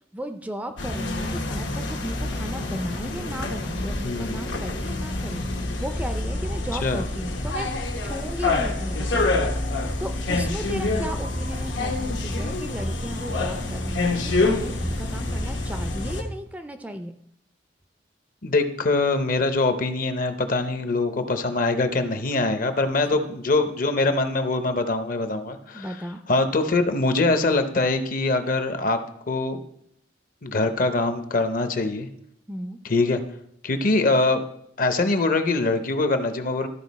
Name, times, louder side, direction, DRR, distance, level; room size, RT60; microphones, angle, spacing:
voice 1, 0.1-5.4 5.8-7.8 8.0-9.5 10.0-17.1 23.3-23.4 25.7-26.2 32.5-32.8, right 1 dB, 10° right, 7 dB, 0.4 m, -35 dB
sound 1, 0.8-16.2, left 2 dB, 85° left, 1.1 m, -27 dB
voice 2, 4.0-4.4 6.8-7.0 18.4-25.9 26.3-29.0 29.3-29.6 30.4-32.1 32.8-33.2 33.6-34.4 34.8-36.7, left 3 dB, 50° left, 9 dB, 0.7 m, -23 dB
12.5 x 4.7 x 4.1 m, 0.71 s
head